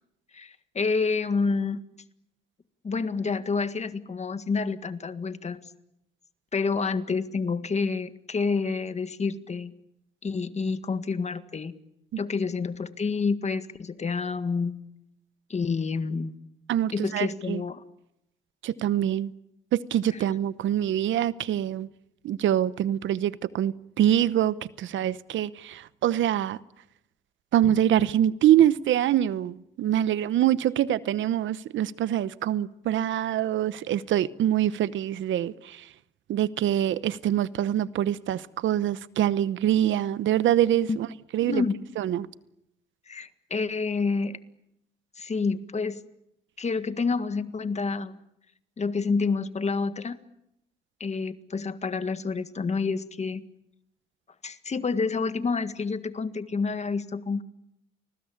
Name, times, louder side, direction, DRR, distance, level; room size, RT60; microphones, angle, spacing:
voice 1, 0.3-1.8 2.8-5.6 6.5-9.7 10.2-11.7 12.2-14.7 15.5-16.3 16.9-17.8 40.9-41.0 41.5-41.7 43.1-44.4 45.2-46.0 46.6-48.2 48.8-50.2 51.0-53.4 54.4-57.4, left 4 dB, 35° left, 1.8 m, -28 dB
voice 2, 16.7-17.6 18.6-19.3 19.7-21.9 22.2-26.6 27.5-35.9 36.3-41.1 41.3-41.6 42.0-42.3, right 11 dB, 75° right, 0.9 m, -25 dB
29.5 x 20.5 x 8.7 m
cardioid pair, 90°, 20 cm